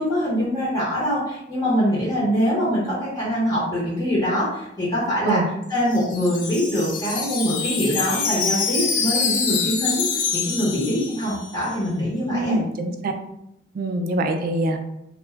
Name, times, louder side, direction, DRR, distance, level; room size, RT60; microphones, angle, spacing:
voice 1, 0.0-5.4 5.7-10.1 10.3-12.6, equal, 20° left, -8 dB, 0.8 m, -23 dB
Wind chime, 5.6-11.6, left 5 dB, 90° left, 0.5 m, -26 dB
voice 2, 12.3-13.1 13.7-14.8, right 1 dB, 50° right, 6 dB, 0.3 m, -24 dB
2.3 x 2.2 x 3.1 m, 0.81 s
head